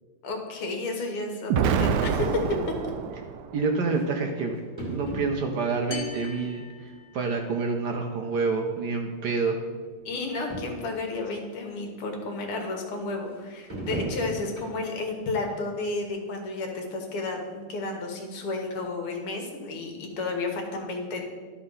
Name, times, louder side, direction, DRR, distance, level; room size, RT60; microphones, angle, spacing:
voice 1, 0.2-2.4 2.8-2.9 10.1-21.2, left 3 dB, 80° left, 2 dB, 2.1 m, -32 dB
Explosion, 1.5-3.6, right 7 dB, 90° right, 0.9 m, -26 dB
sound 1, 2.9-3.0 3.9-4.0 4.8-5.7 6.2-6.7 7.1-7.3 8.2-8.3 8.5-8.6 9.4-9.5 9.9-10.0 10.2-10.3 10.5-10.9 11.5-11.6 13.7-15.0 15.4-15.6 16.1-16.2, right 2 dB, 15° right, 2.0 m, -36 dB
voice 2, 3.5-4.6 4.9-9.6, right 4 dB, 70° right, 3 dB, 1.0 m, -28 dB
sound 2, 5.9-7.6, left 6 dB, 65° left, 1.2 m, -41 dB
12.0 x 4.3 x 5.4 m, 1.5 s
omnidirectional pair, 2.4 m